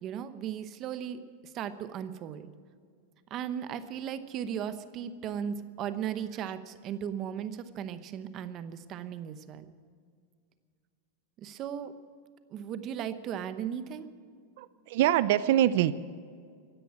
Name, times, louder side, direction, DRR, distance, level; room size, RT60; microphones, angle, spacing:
voice 1, 0.0-2.5 3.3-9.7 11.4-11.9 12.5-14.1, right 9 dB, 30° right, 12 dB, 0.9 m, -36 dB
voice 2, 14.6-15.9, right 12 dB, 55° right, 15 dB, 0.5 m, -24 dB
16.0 x 10.0 x 8.6 m, 2.1 s
supercardioid pair, 165°, 0 cm